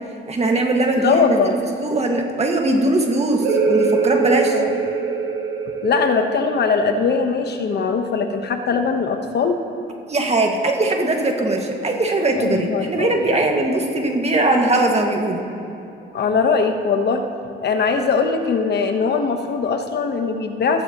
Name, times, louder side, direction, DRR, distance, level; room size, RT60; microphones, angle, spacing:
voice 1, 0.3-1.4 1.8-4.6 10.1-15.4, right 2 dB, 35° right, 2 dB, 1.9 m, -20 dB
voice 2, 1.0-1.6 4.5-4.7 5.8-9.6 12.3-13.4 16.1-17.2 17.6-20.8, left 5 dB, 55° left, 6 dB, 1.2 m, -21 dB
sound 1, 3.4-8.8, right 5 dB, 80° right, 1.9 m, -24 dB
15.5 x 15.0 x 3.1 m, 2.8 s
cardioid pair, 90°, 20 cm